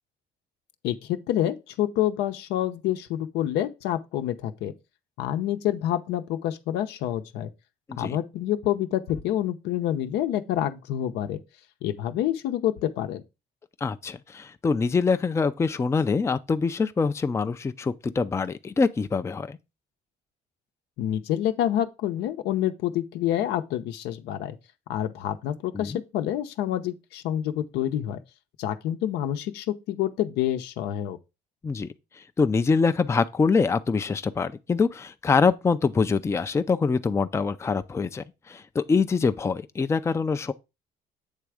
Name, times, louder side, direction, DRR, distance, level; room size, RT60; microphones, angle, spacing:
voice 1, 0.8-4.7 5.2-7.5 8.0-11.4 11.8-13.2 21.0-24.6 24.9-28.2 28.6-31.2, left 12 dB, 85° left, 0.7 m, -27 dB
voice 2, 13.8-19.6 25.7-26.0 31.6-31.9 32.4-40.5, left 4 dB, 15° left, 0.4 m, -24 dB
8.2 x 3.4 x 4.8 m
cardioid pair, 110°, 17 cm